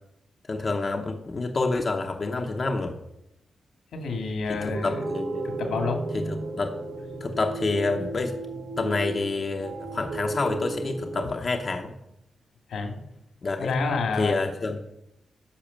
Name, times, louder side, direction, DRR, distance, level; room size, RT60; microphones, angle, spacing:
voice 1, 0.5-2.9 4.6-5.4 6.1-6.2 6.6-6.8 7.2-8.3 8.8-11.9 13.4-13.8 14.2-14.8, left 3 dB, 30° left, 3 dB, 0.8 m, -28 dB
voice 2, 3.9-5.0 5.4-6.0 12.7-13.0 13.6-14.3, left 4 dB, 85° left, 3 dB, 2.4 m, -28 dB
sound 1, 4.5-11.2, right 2 dB, 75° right, 1.6 m, -34 dB
10.0 x 6.2 x 7.3 m, 0.83 s
wide cardioid pair, 180°, 0 cm